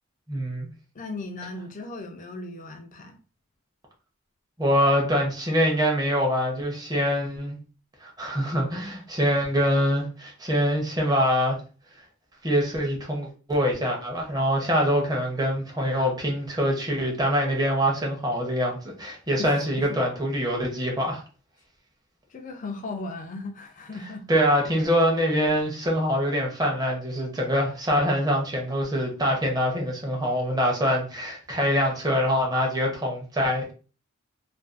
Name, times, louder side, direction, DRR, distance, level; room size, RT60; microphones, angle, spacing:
voice 1, 0.3-0.7 4.6-7.6 8.0-11.6 12.4-21.2 24.3-33.7, equal, 20° right, 0.6 m, -24 dB
voice 2, 0.9-3.2 19.4-19.5 22.3-24.3, left 2 dB, 40° left, 0.4 m, -37 dB
2.5 x 2.3 x 2.4 m
head